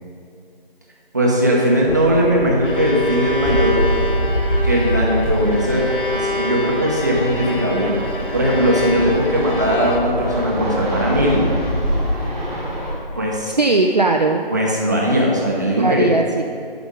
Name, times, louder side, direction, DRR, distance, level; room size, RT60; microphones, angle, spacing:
voice 1, 1.1-3.8 4.6-7.9 8.3-11.4 13.1-13.6 14.5-16.1, equal, 20° right, -3 dB, 0.8 m, -19 dB
Fixed-wing aircraft airplane, 1.9-12.9, equal, 10° left, 1.6 m, -24 dB
Bowed string instrument, 2.5-10.4, left 2 dB, 60° left, 0.9 m, -27 dB
voice 2, 13.6-14.5 15.7-16.4, right 3 dB, 45° right, 3 dB, 0.4 m, -18 dB
8.4 x 6.0 x 5.2 m, 2.6 s
figure-of-eight pair, 160°, 30 cm